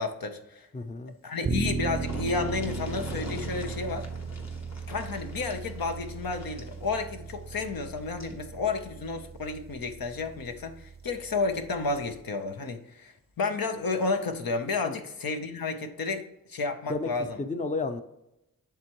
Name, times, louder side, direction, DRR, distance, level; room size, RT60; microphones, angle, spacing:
voice 1, 0.0-0.7 1.2-4.1 4.9-17.4, left 4 dB, 75° left, 6 dB, 0.9 m, -31 dB
voice 2, 0.7-1.1 14.8-15.0 16.9-17.1 17.4-18.0, left 3 dB, 20° left, 9 dB, 0.6 m, -31 dB
sound 1, 1.3-1.4 1.6-8.4 9.7-9.8 10.2-10.3, left 2 dB, 50° left, 1.4 m, -45 dB
sound 2, 1.4-12.2, right 5 dB, 30° right, 0.5 m, -37 dB
10.5 x 3.6 x 3.0 m, 0.87 s
cardioid pair, 45°, 35 cm